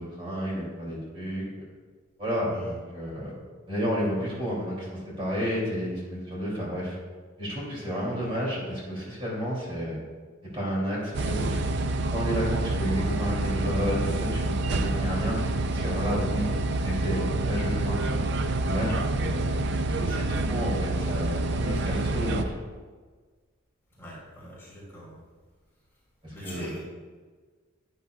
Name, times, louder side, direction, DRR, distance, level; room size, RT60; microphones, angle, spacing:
voice 1, 0.0-1.4 2.2-3.3 3.7-7.0 7.4-10.0 10.4-11.6 12.1-15.4 15.7-16.4 16.8-18.2 18.6-19.5 20.0-21.3 21.6-22.6 26.2-26.7, equal, 25° right, -5 dB, 2.9 m, -31 dB
voice 2, 7.8-8.2 24.0-25.2 26.3-26.8, equal, 10° left, -7 dB, 2.6 m, -42 dB
sound 1, 11.1-22.4, right 2 dB, 55° right, 0.5 m, -27 dB
11.0 x 9.4 x 2.4 m, 1.5 s
head